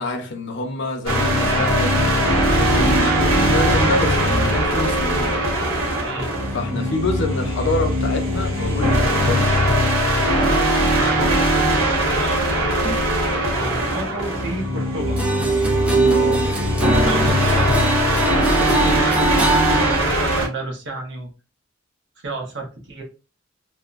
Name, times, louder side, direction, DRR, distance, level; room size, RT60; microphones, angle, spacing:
voice 1, 0.0-2.1 2.5-5.4 6.5-9.6 16.0-16.4 16.8-17.1 17.5-17.6, left 2 dB, 60° left, 0.6 m, -27 dB
sound 1, 1.1-20.5, equal, 80° right, 1.2 m, -20 dB
voice 2, 6.0-6.3 10.0-15.2 17.1-21.3 22.2-23.0, right 2 dB, 65° right, 0.8 m, -32 dB
sound 2, 15.0-20.0, right 3 dB, 5° right, 0.4 m, -22 dB
2.6 x 2.1 x 2.4 m
head